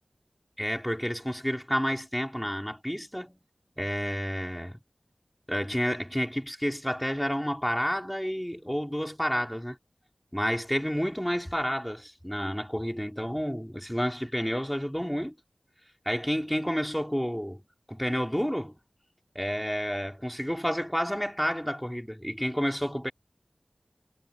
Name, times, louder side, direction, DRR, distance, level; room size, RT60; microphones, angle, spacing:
voice 1, 0.6-3.4 3.8-4.8 5.5-9.8 10.3-15.3 16.1-17.6 17.9-18.8 19.4-23.1, equal, 5° left, 4.0 m, -30 dB
wide cardioid pair, 55°, 0 cm